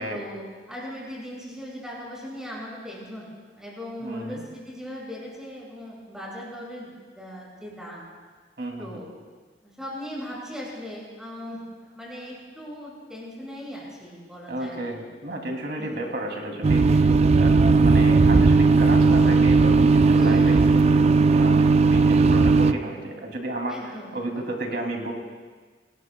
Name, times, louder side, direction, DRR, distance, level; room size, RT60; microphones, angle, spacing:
voice 1, 0.1-3.3 3.6-8.0 8.8-9.1 9.6-11.6 11.9-14.8 15.8-16.1 20.1-20.6 23.7-24.4, equal, 5° right, -5 dB, 6.2 m, -38 dB
voice 2, 4.0-4.4 8.6-8.9 14.5-17.1 17.4-25.1, right 1 dB, 65° right, 1 dB, 2.8 m, -32 dB
sound 1, 16.6-22.7, right 4 dB, 40° right, 0.4 m, -17 dB
26.5 x 19.5 x 2.3 m, 1.5 s
head